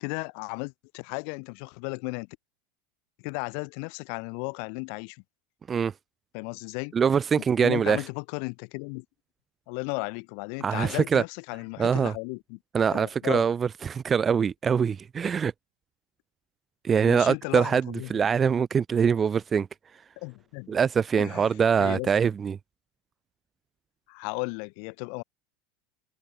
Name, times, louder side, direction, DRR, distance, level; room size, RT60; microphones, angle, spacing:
voice 1, 0.0-2.3 3.2-5.2 6.3-6.9 7.6-9.0 9.7-12.6 12.9-13.5 17.0-18.2 20.2-20.7 21.2-21.5 21.8-22.1 24.1-25.2, left 40 dB or more, 55° left, 3.4 m, -35 dB
voice 2, 6.9-8.0 10.6-11.2 11.8-12.1 12.7-15.5 16.8-19.7 20.7-22.6, right 7 dB, 25° right, 0.3 m, -23 dB
figure-of-eight pair, 80°, 0 cm